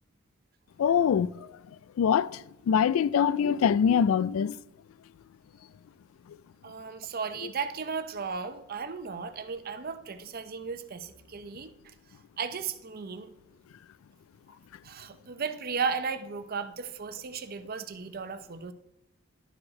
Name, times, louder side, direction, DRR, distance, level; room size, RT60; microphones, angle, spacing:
voice 1, 0.8-1.3 2.0-4.6, left 7 dB, 85° left, 0.3 m, -24 dB
voice 2, 6.6-11.7 12.4-13.3 14.8-18.7, right 5 dB, 45° right, 0.6 m, -35 dB
11.0 x 4.6 x 4.2 m
head